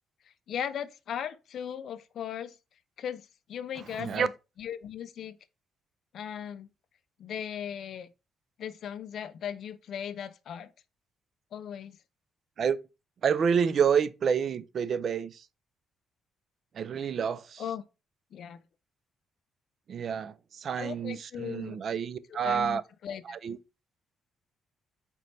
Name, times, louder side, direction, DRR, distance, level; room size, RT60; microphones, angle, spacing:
voice 1, 0.5-2.6 3.0-4.3 4.6-5.4 6.1-6.7 7.2-8.1 8.6-10.7 11.5-12.0 17.6-17.8 18.3-18.6 20.8-21.8 22.3-23.2, left 9 dB, 65° left, 0.4 m, -37 dB
voice 2, 13.2-15.4 16.7-17.6 19.9-22.8 23.3-23.6, right 7 dB, 55° right, 0.3 m, -28 dB
4.3 x 3.2 x 2.6 m
cardioid pair, 90°, 0 cm